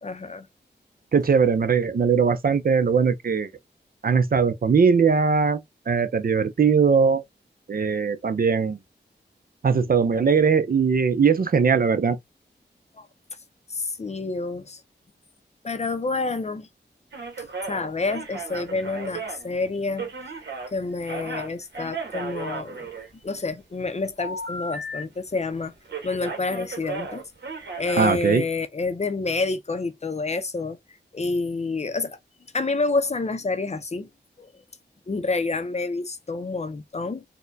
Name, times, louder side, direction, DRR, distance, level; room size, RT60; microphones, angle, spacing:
voice 1, 0.0-0.5 12.9-13.1 13.7-14.8 15.6-16.7 17.7-20.4 20.7-23.0 23.2-25.7 26.0-27.2 27.8-30.8 31.1-32.2 32.5-34.1 34.4-34.5 35.1-37.2, left 3 dB, 35° left, 0.5 m, -28 dB
voice 2, 1.1-3.5 4.0-5.6 5.9-7.2 7.7-8.8 9.6-12.2 28.0-28.4, right 5 dB, 55° right, 0.5 m, -20 dB
sound 1, 17.1-20.7 21.0-23.5 24.2-25.0 25.3-25.5 25.8-28.1, right 3 dB, 70° right, 1.1 m, -35 dB
4.2 x 2.2 x 2.6 m
wide cardioid pair, 75°, 18 cm